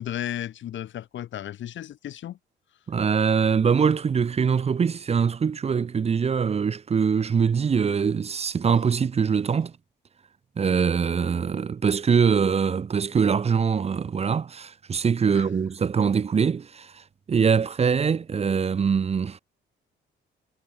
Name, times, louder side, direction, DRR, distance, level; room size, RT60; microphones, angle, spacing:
voice 1, 0.0-2.4 15.3-15.5, left 11 dB, 70° left, 3.0 m, -34 dB
voice 2, 2.9-9.7 10.6-19.4, right 6 dB, 30° right, 0.6 m, -23 dB
cardioid pair, 90°, 20 cm